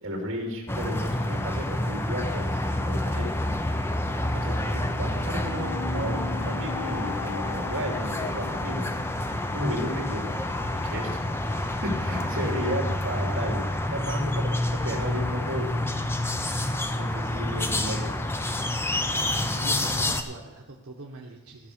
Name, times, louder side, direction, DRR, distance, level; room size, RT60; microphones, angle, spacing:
voice 1, 0.0-3.3 4.3-9.0 9.5-10.3 10.7-11.2 11.5-14.5 14.8-15.7 17.0-18.2, equal, 60° right, 1 dB, 2.7 m, -33 dB
sound 1, 0.7-20.2, left 1 dB, 10° left, 0.5 m, -28 dB
sound 2, 4.8-9.9, left 5 dB, 65° left, 0.8 m, -40 dB
voice 2, 14.2-14.6 16.9-18.1 19.4-21.7, right 3 dB, 90° right, 0 dB, 1.0 m, -45 dB
14.0 x 5.9 x 6.5 m, 1.1 s
head